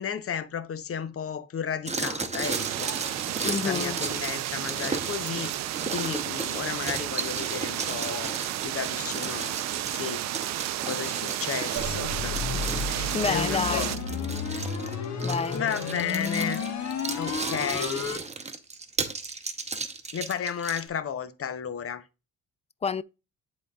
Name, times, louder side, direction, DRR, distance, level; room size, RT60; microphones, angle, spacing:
voice 1, 0.0-2.9 3.4-9.6 9.9-10.3 10.8-14.0 14.5-14.7 15.5-16.6 17.2-18.1 20.1-22.0, left 8 dB, 50° left, 0.8 m, -33 dB
sound 1, 1.9-20.9, right 4 dB, 20° right, 0.9 m, -35 dB
sound 2, 2.4-14.0, right 13 dB, 65° right, 0.5 m, -32 dB
voice 2, 3.4-4.0 13.1-13.9 15.2-15.6 22.8-23.0, left 5 dB, 20° left, 0.3 m, -28 dB
sound 3, 11.8-18.2, left 5 dB, 65° left, 1.3 m, -32 dB
11.0 x 3.8 x 2.3 m
cardioid pair, 90°, 30 cm